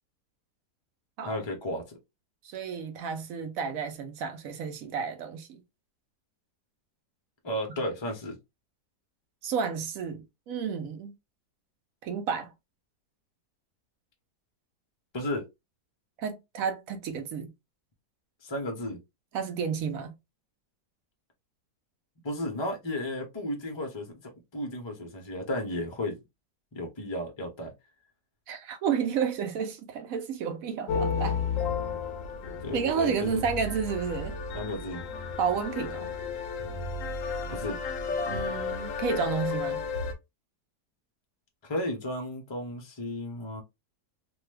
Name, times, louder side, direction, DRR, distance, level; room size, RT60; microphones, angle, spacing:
voice 1, 1.2-2.0 7.4-8.4 15.1-15.5 18.4-19.0 22.2-24.1 24.5-26.2 26.7-27.7 32.6-33.4 34.5-35.0 37.5-37.8 41.6-43.6, left 1 dB, 30° left, 0.4 m, -33 dB
voice 2, 2.4-5.6 9.4-11.1 12.0-12.5 16.2-17.5 19.3-20.1 28.5-31.4 32.7-34.4 35.4-36.1 38.3-39.8, right 6 dB, 65° right, 1.0 m, -31 dB
sound 1, 30.9-40.1, left 5 dB, 65° left, 0.9 m, -33 dB
2.8 x 2.3 x 3.2 m
omnidirectional pair, 1.7 m